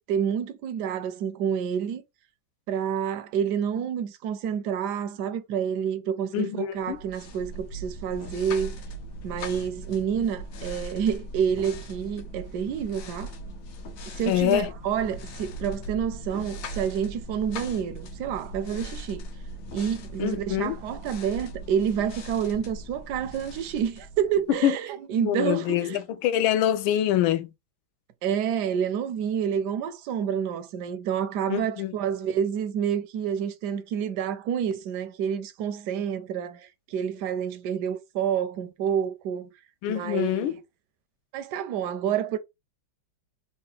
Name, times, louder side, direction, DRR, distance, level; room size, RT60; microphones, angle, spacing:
voice 1, 0.0-2.0 2.7-8.7 9.2-13.3 14.1-19.3 19.7-26.0 28.2-39.5 39.9-40.6 41.3-42.4, right 8 dB, 75° right, 1.0 m, -28 dB
voice 2, 6.3-7.0 14.3-14.7 20.2-20.8 24.5-24.8 25.2-27.5 31.5-31.9 39.8-40.5, left 12 dB, 85° left, 1.4 m, -25 dB
sound 1, 6.8-24.7, right 1 dB, 65° left, 0.9 m, -39 dB
3.8 x 2.2 x 3.8 m
omnidirectional pair, 2.2 m